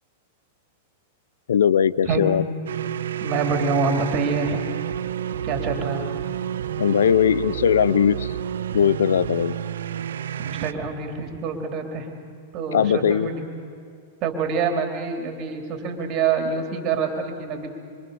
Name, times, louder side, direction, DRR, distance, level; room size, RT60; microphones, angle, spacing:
voice 1, 1.5-2.4 6.8-8.3 8.7-9.6 12.7-13.3, left 8 dB, 80° left, 19 dB, 0.7 m, -19 dB
sound 1, 2.7-10.7, right 9 dB, 75° right, 0.7 m, -30 dB
voice 2, 3.2-4.6 5.4-6.0 10.4-12.1 12.5-13.4 14.2-17.7, right 5 dB, 40° right, 4 dB, 3.6 m, -26 dB
25.5 x 25.5 x 6.9 m, 2.4 s
hypercardioid pair, 110°, 0 cm